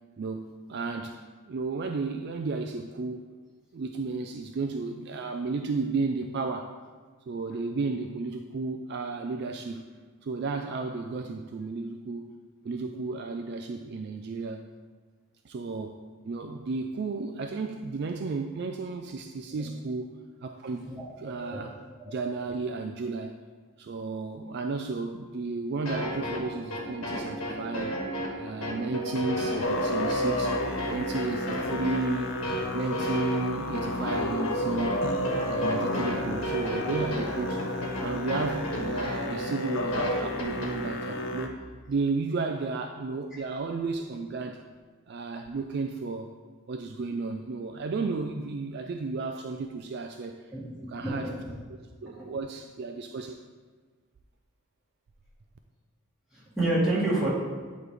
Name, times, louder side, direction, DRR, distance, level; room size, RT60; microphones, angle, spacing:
voice 1, 0.2-1.2 1.5-3.3 3.7-6.7 7.3-9.8 10.2-12.3 12.6-14.7 15.4-20.1 20.4-21.7 22.1-23.4 23.8-28.1 28.4-30.6 30.9-32.4 32.7-35.0 35.5-37.6 38.0-41.6 41.9-44.6 45.1-46.3 46.7-50.5 50.9-51.3 52.0-53.4, right 3 dB, 50° right, 5 dB, 0.3 m, -33 dB
sound 1, 25.9-40.7, equal, 75° left, 1.3 m, -33 dB
Musical instrument, 29.6-41.5, left 1 dB, 55° left, 0.6 m, -31 dB
voice 2, 50.5-51.5 52.1-52.3 56.3-57.3, right 2 dB, 5° right, -10 dB, 2.0 m, -29 dB
8.8 x 3.2 x 4.8 m, 1.5 s
head